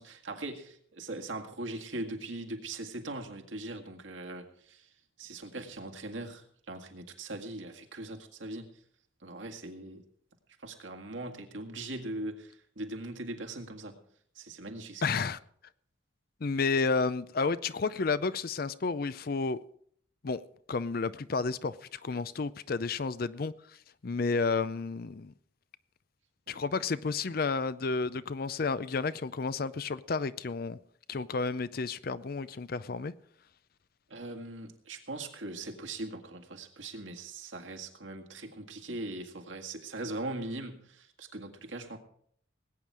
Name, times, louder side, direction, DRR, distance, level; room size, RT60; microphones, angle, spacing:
voice 1, 0.0-4.9 5.2-8.7 9.2-10.0 10.6-14.0 14.4-15.3 22.1-22.2 26.5-26.6 34.1-42.0, right 2 dB, 70° right, 1.9 m, -40 dB
voice 2, 15.0-15.4 16.4-19.6 20.2-20.4 20.7-23.5 24.0-25.3 26.5-30.8 31.1-33.1, left 4 dB, 50° left, 0.5 m, -31 dB
20.0 x 9.1 x 4.8 m
head